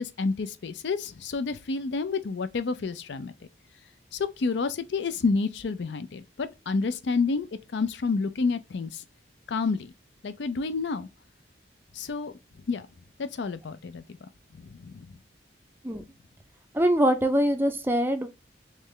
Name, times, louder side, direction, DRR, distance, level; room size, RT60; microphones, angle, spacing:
voice 1, 0.0-3.3 4.1-7.5 7.7-9.0 9.5-9.9 10.2-11.1 11.9-12.3 12.7-12.9 13.2-14.0 14.7-15.1, left 4 dB, 75° left, 0.5 m, -29 dB
voice 2, 16.7-18.3, equal, 10° right, 0.4 m, -23 dB
3.3 x 3.2 x 3.7 m
head